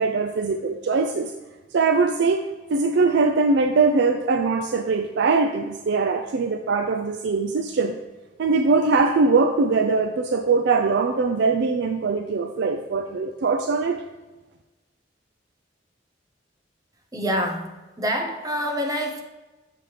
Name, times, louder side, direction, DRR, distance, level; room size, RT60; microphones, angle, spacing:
voice 1, 0.0-1.3 1.7-7.9 8.4-14.0, right 4 dB, 65° right, 5 dB, 0.4 m, -22 dB
voice 2, 17.1-19.2, equal, 20° right, 2 dB, 0.8 m, -26 dB
7.6 x 6.1 x 3.3 m, 1.2 s
head